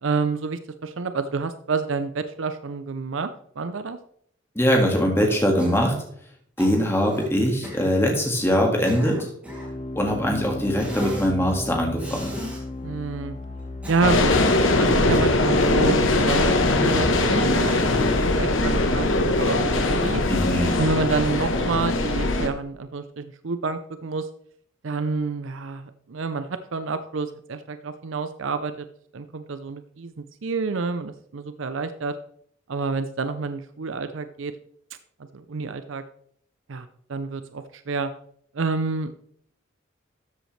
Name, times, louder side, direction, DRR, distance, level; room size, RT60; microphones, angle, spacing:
voice 1, 0.0-4.0 10.3-10.5 12.8-13.3 13.9-14.3 14.7-17.8 18.1-20.2 20.8-24.3 24.8-28.9 29.1-32.2 32.7-34.5 35.3-36.0 36.7-38.1 38.5-39.2, right 4 dB, 70° right, 10 dB, 0.6 m, -28 dB
voice 2, 4.6-6.0 6.6-9.3 10.0-12.3 20.3-20.8, equal, 10° left, 1 dB, 1.9 m, -22 dB
Cough, 5.6-6.0 6.6-7.3 7.6-7.9 8.6-9.8 10.7-11.3 12.0-12.6 13.6-14.4 15.6-16.1, equal, 5° right, 2.6 m, -37 dB
sound 1, 9.5-17.3, left 2 dB, 35° left, 1.2 m, -35 dB
sound 2, 14.0-22.5, left 2 dB, 70° left, 1.2 m, -21 dB
13.0 x 7.8 x 3.3 m, 0.65 s
head